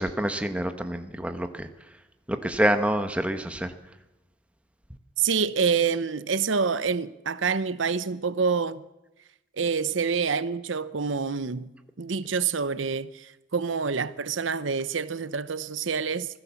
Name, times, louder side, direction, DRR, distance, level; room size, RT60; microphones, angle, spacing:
voice 1, 0.0-1.7 2.3-3.7, right 1 dB, 5° right, 1.3 m, -27 dB
voice 2, 5.2-8.8 9.6-11.7 12.0-16.3, right 5 dB, 85° right, 0.8 m, -27 dB
25.5 x 16.5 x 7.1 m
head